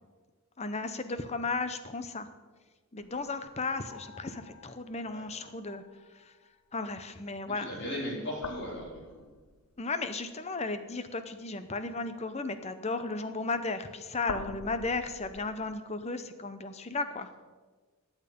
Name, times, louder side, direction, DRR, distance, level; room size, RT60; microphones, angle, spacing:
voice 1, 0.6-2.3 2.9-5.8 6.1-6.3 6.7-7.7 9.8-17.3, left 3 dB, 30° left, 10 dB, 0.7 m, -35 dB
sound 1, 3.0-6.4 8.2-9.8 13.2-15.6, left 5 dB, 85° left, 0.7 m, -46 dB
voice 2, 7.5-9.2, equal, 50° left, -3 dB, 4.4 m, -37 dB
15.5 x 9.0 x 5.3 m, 1.4 s
head